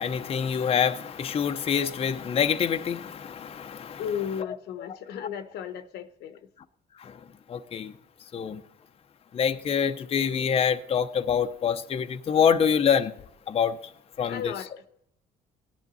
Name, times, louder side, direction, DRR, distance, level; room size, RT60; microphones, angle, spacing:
voice 1, 0.0-4.0 4.8-4.9 7.0-7.1 7.5-7.9 8.3-8.6 9.3-13.1 13.5-13.8 14.2-14.5, left 7 dB, 35° left, 0.7 m, -25 dB
voice 2, 4.0-6.4 14.2-14.8, left 8 dB, 80° left, 1.0 m, -34 dB
18.0 x 10.5 x 4.1 m
cardioid pair, 110°, 17 cm